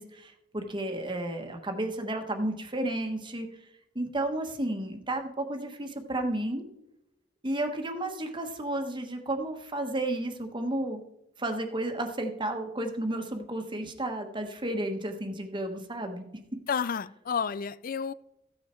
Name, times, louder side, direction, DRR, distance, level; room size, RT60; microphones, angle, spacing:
voice 1, 0.0-3.5 3.9-6.6 7.4-11.0 11.4-16.2, right 1 dB, 25° right, 1.4 m, -32 dB
voice 2, 16.7-18.1, left 6 dB, 50° left, 0.4 m, -30 dB
14.5 x 9.5 x 4.5 m
head